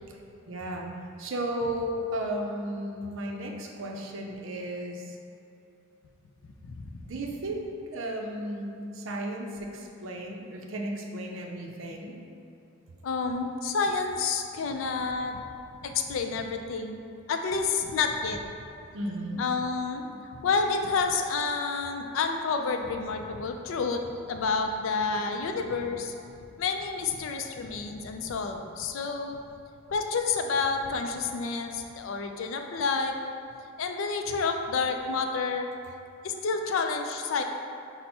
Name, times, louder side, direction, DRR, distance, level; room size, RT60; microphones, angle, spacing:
voice 1, 0.5-0.9 1.2-5.2 7.0-12.2 18.9-19.4, right 1 dB, 65° right, 1 dB, 0.5 m, -34 dB
voice 2, 6.6-7.0 13.0-15.4 15.8-17.0 17.3-18.4 19.4-20.0 20.3-26.1 26.6-29.4 29.9-33.2 33.8-35.7 36.2-37.4, left 4 dB, 70° left, 4 dB, 0.4 m, -29 dB
5.5 x 2.1 x 4.2 m, 2.8 s
head